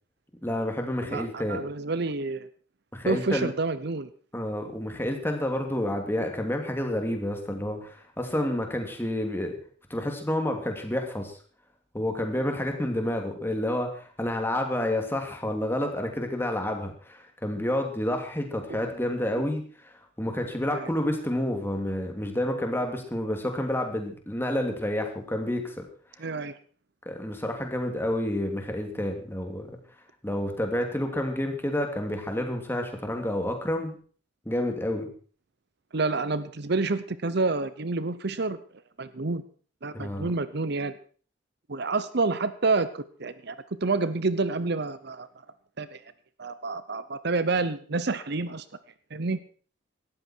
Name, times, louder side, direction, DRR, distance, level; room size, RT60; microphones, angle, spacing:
voice 1, 0.4-1.6 2.9-3.5 4.3-9.6 9.9-11.3 11.9-25.8 27.1-29.7 30.2-34.0 34.4-35.1 39.9-40.3, left 1 dB, 10° left, 3 dB, 2.9 m, -29 dB
voice 2, 1.1-2.5 3.0-4.1 18.7-18.8 20.7-20.9 26.2-26.5 35.9-38.6 39.0-39.4 39.8-40.9 41.7-43.6 43.8-45.3 45.8-46.0 46.4-48.6 49.1-49.4, right 3 dB, 60° right, 14 dB, 0.8 m, -28 dB
18.0 x 13.5 x 4.6 m, 0.43 s
head